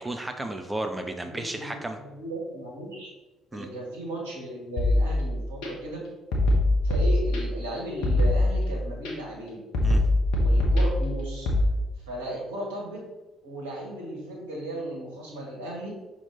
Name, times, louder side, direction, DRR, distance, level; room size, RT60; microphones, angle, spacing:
voice 1, 0.0-2.0 3.5-3.7 9.8-10.0, right 1 dB, 15° right, 6 dB, 0.5 m, -33 dB
voice 2, 1.2-3.1 3.5-6.0 6.8-9.6 10.4-11.5 12.1-13.0 13.4-16.0, right 1 dB, 75° right, -2 dB, 1.5 m, -36 dB
sound 1, 4.8-5.7 6.3-7.7 8.0-9.1 9.7-11.6, left 1 dB, 60° left, 1.1 m, -23 dB
5.9 x 4.0 x 4.0 m, 1.1 s
figure-of-eight pair, 50°, 0 cm